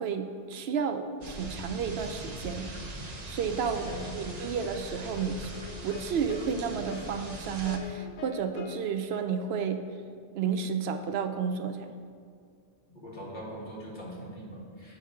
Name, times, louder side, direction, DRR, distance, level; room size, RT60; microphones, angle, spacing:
voice 1, 0.0-2.7 3.3-5.5 5.8-9.9 10.3-12.0, right 6 dB, 75° right, 8 dB, 0.8 m, -31 dB
sound 1, 1.2-7.8, right 2 dB, 40° right, 0.9 m, -41 dB
voice 2, 3.4-4.0 12.9-15.0, right 1 dB, 50° left, -4 dB, 1.7 m, -42 dB
sound 2, 3.9-8.8, left 6 dB, 70° left, 0.9 m, -44 dB
7.9 x 5.0 x 5.7 m, 2.2 s
omnidirectional pair, 1.1 m